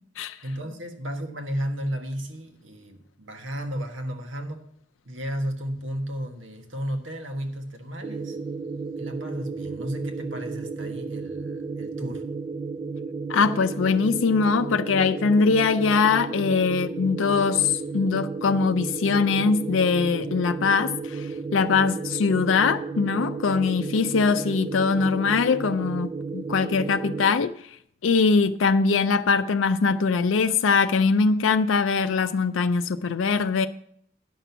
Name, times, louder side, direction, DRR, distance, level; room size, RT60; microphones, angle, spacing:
voice 1, 0.4-4.7 5.0-8.4 9.0-12.2, equal, 80° right, 1.4 m, -33 dB
sound 1, 8.0-27.3, right 4 dB, 20° right, 0.3 m, -33 dB
voice 2, 13.3-27.7 28.0-33.7, left 5 dB, 90° left, 0.4 m, -22 dB
10.0 x 6.0 x 6.7 m
head